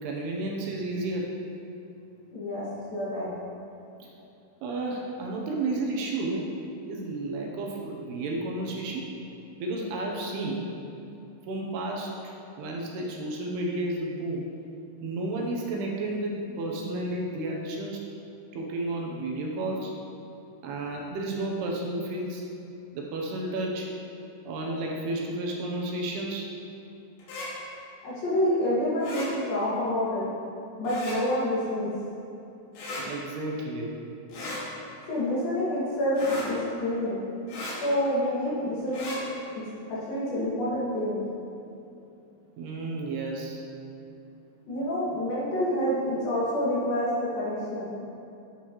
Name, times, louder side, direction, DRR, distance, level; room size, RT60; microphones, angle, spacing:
voice 1, 0.0-1.3 4.0-4.1 4.6-6.5 6.8-9.1 9.6-10.7 11.5-14.5 15.0-18.0 18.5-19.9 20.6-22.4 22.9-23.9 24.5-26.5 33.0-34.0 42.6-43.6, right 2 dB, 75° right, -1 dB, 2.8 m, -32 dB
voice 2, 2.3-3.3 28.0-30.3 30.8-31.9 35.1-37.2 37.8-39.2 39.9-41.2 44.7-47.9, left 1 dB, 60° left, -8 dB, 3.4 m, -28 dB
sound 1, 27.2-27.5 29.0-29.3 30.9-31.2 32.8-33.0 34.3-34.6 36.2-36.5 37.5-37.8 38.9-39.2, left 2 dB, 85° left, 3.8 m, -36 dB
10.0 x 7.5 x 3.1 m, 2.7 s
omnidirectional pair, 4.8 m